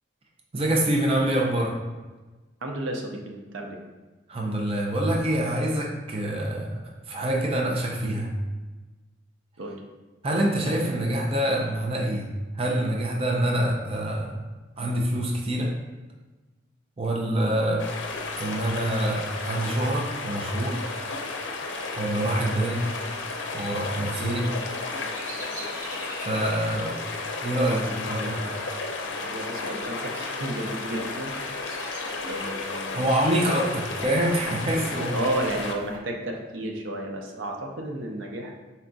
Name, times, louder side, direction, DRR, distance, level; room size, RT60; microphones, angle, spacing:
voice 1, 0.5-1.7 4.3-6.7 7.1-8.3 10.2-12.3 12.5-14.4 14.8-15.7 17.0-17.8 18.4-20.8 22.0-22.8 23.5-24.5 26.2-26.9 27.4-27.8 28.1-28.4 32.9-35.2, right 1 dB, 30° right, -1 dB, 0.5 m, -25 dB
voice 2, 2.6-3.8 9.6-9.8 17.3-17.6 24.2-24.6 27.6-28.6 29.2-31.3 32.3-33.1 35.1-38.5, right 1 dB, 80° right, 1 dB, 0.6 m, -33 dB
sound 1, 17.8-36.0, left 3 dB, 75° left, 0.5 m, -33 dB
Bird vocalization bird call bird song, 24.4-29.4 29.7-30.3 30.9-32.8, right 2 dB, 50° right, 1.1 m, -44 dB
4.3 x 2.3 x 3.8 m, 1.2 s
head